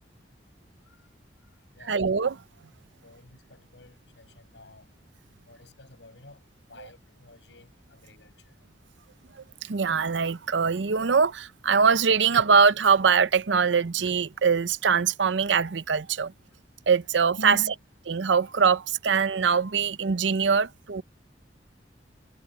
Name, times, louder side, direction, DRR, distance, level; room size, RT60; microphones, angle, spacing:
voice 1, 1.8-2.4 6.8-6.9 9.7-16.3 16.9-17.6 18.1-21.0, right 5 dB, 90° right, 0.7 m, -23 dB
voice 2, 3.0-4.9 5.5-6.4 6.7-8.5 17.4-17.7, left 1 dB, 90° left, 7.2 m, -45 dB
head